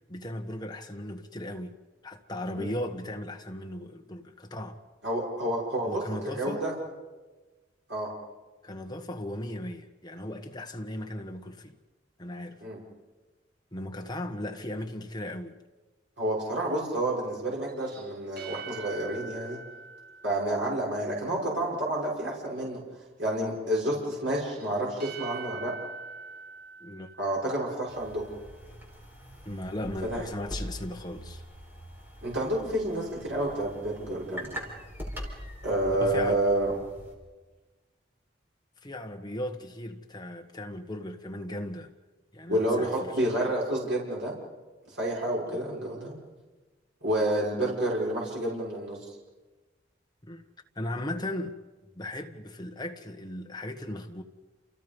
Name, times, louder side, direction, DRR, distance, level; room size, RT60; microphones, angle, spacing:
voice 1, 0.1-1.8 2.0-4.8 5.8-6.6 8.6-11.8 12.2-12.6 13.7-15.6 26.8-27.1 29.4-31.4 35.9-36.4 38.8-41.9 42.3-43.1 45.5-45.6 50.2-50.4 50.7-51.6 51.9-54.2, left 1 dB, 20° left, 1.6 m, -37 dB
voice 2, 5.0-6.7 7.9-8.1 12.6-12.8 16.2-19.6 20.2-22.8 23.2-25.7 27.2-28.2 30.1-30.2 32.2-34.6 35.6-36.7 42.5-44.3 44.9-46.1 47.0-49.0, right 1 dB, 75° right, 6.6 m, -29 dB
sound 1, 17.7-21.2 24.4-28.0, right 4 dB, 55° right, 7.2 m, -44 dB
sound 2, 27.9-37.1, equal, 10° right, 5.1 m, -43 dB
29.0 x 28.5 x 5.5 m
head